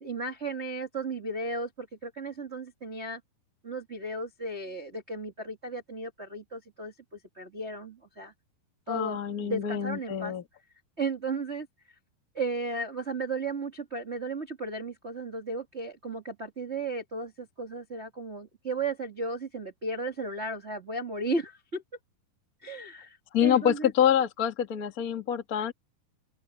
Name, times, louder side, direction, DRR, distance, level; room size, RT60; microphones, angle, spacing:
voice 1, 0.0-3.2 3.6-8.3 8.9-10.3 11.0-11.7 12.3-21.8 22.6-23.9, right 2 dB, 65° right, 0.6 m, -35 dB
voice 2, 8.9-10.4 23.3-25.7, left 9 dB, 35° left, 1.4 m, -26 dB
open air
omnidirectional pair, 4.7 m